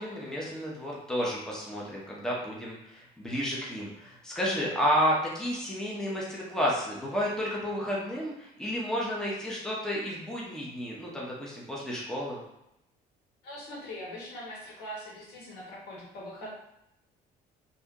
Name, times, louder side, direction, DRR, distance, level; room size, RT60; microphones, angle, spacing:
voice 1, 0.0-12.4, equal, 5° left, -5 dB, 0.8 m, -31 dB
voice 2, 13.4-16.5, equal, 80° left, -5 dB, 1.4 m, -42 dB
2.7 x 2.3 x 3.7 m, 0.84 s
cardioid pair, 110°, 17 cm